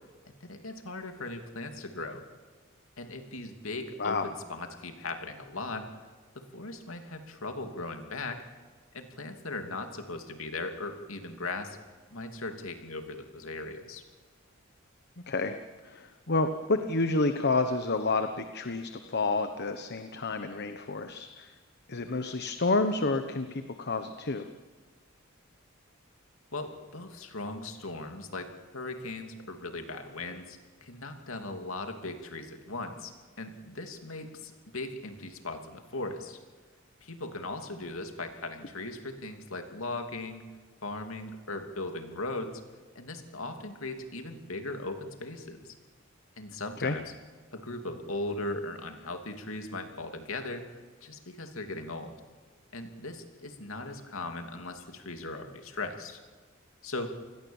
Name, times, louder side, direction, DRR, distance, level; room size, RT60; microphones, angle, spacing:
voice 1, 0.4-2.2 3.0-5.9 6.3-8.4 8.9-11.8 12.1-14.0 26.5-33.1 33.4-36.4 37.0-40.4 40.8-42.5 42.9-45.7 46.4-47.1 47.5-50.6 51.0-52.1 52.7-56.2 56.8-57.1, left 2 dB, 80° left, 5 dB, 2.8 m, -38 dB
voice 2, 15.8-21.5 21.9-24.5 46.8-47.0, left 3 dB, 55° left, 8 dB, 1.2 m, -29 dB
28.0 x 20.5 x 7.3 m, 1.5 s
head